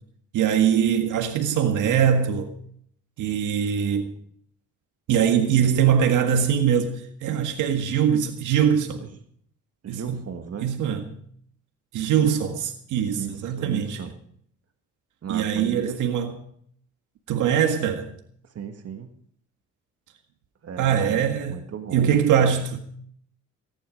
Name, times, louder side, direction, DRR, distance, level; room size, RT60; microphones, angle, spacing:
voice 1, 0.3-2.5 3.2-4.1 5.1-9.0 9.9-10.2 10.6-11.1 11.9-14.0 15.3-16.3 17.3-18.1 20.8-21.6 21.9-22.8, right 8 dB, 85° right, 1.8 m, -22 dB
voice 2, 9.8-10.7 13.1-14.1 15.2-16.0 18.6-19.1 20.6-22.6, right 7 dB, 55° right, 1.8 m, -36 dB
18.0 x 11.0 x 5.2 m
cardioid pair, 90°, 30 cm